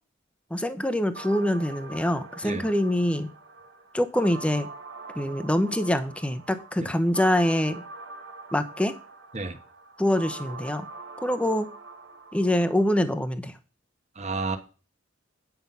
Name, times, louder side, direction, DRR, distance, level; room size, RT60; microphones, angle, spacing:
voice 1, 0.5-3.3 3.9-4.7 5.2-7.8 8.5-8.9 10.0-10.9 11.2-11.7 12.3-13.5, left 1 dB, 5° left, 0.8 m, -25 dB
sound 1, 1.1-13.1, right 3 dB, 75° right, 1.4 m, -44 dB
voice 2, 14.1-14.6, right 3 dB, 35° right, 1.3 m, -31 dB
9.4 x 5.8 x 5.4 m
head